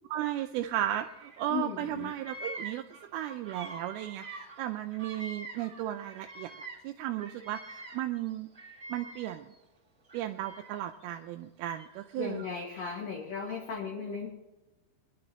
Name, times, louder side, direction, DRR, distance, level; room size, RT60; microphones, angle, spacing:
voice 1, 0.1-2.8 3.1-8.5 8.9-9.5 10.1-12.4, right 12 dB, 80° right, 6 dB, 2.4 m, -35 dB
Bird vocalization bird call bird song, 0.8-1.6 1.8-6.9 7.2-9.6 10.0-11.0 11.7-12.8, right 2 dB, 20° right, 2.6 m, -46 dB
voice 2, 1.5-2.1 12.2-14.3, left 6 dB, 50° left, -1 dB, 2.5 m, -36 dB
22.5 x 11.5 x 2.9 m, 1.0 s
omnidirectional pair, 4.6 m